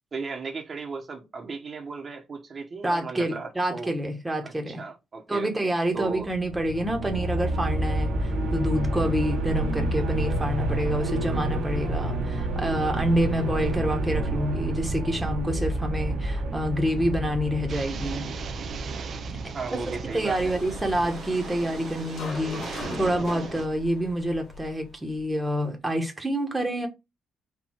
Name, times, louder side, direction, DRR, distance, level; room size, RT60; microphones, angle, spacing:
voice 1, 0.1-3.9 4.4-6.3 19.5-20.5, right 4 dB, 40° right, 1.2 m, -36 dB
voice 2, 2.8-4.8 5.3-18.3 20.1-26.9, equal, 15° right, 1.2 m, -27 dB
sound 1, 6.1-21.1, right 2 dB, 80° right, 1.5 m, -29 dB
sound 2, 17.7-23.7, right 6 dB, 55° right, 0.6 m, -39 dB
sound 3, 20.1-25.3, left 2 dB, 60° left, 2.1 m, -39 dB
4.6 x 2.7 x 4.3 m
cardioid pair, 90°, 0 cm